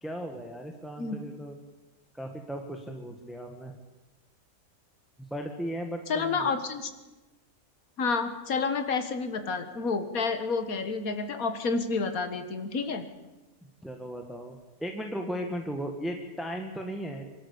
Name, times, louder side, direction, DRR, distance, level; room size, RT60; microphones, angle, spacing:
voice 1, 0.0-1.6 2.1-3.8 5.3-6.5 13.8-17.3, equal, ahead, 3 dB, 1.8 m, -36 dB
voice 2, 6.1-6.9 8.0-13.0, left 4 dB, 75° left, 8 dB, 2.0 m, -29 dB
24.5 x 13.0 x 8.6 m, 1.1 s
omnidirectional pair, 1.5 m